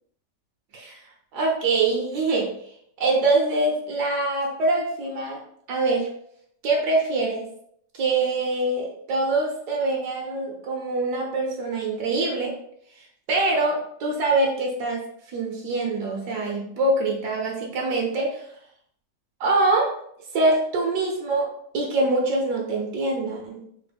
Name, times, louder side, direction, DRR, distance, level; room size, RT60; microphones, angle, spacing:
voice 1, 1.3-2.5 3.0-5.4 5.7-6.1 6.6-7.5 7.9-12.5 13.3-15.0 15.3-18.4 19.4-19.9 20.3-21.5 21.7-23.6, right 2 dB, 70° right, -1 dB, 1.3 m, -24 dB
4.1 x 2.1 x 3.4 m, 0.68 s
omnidirectional pair, 1.8 m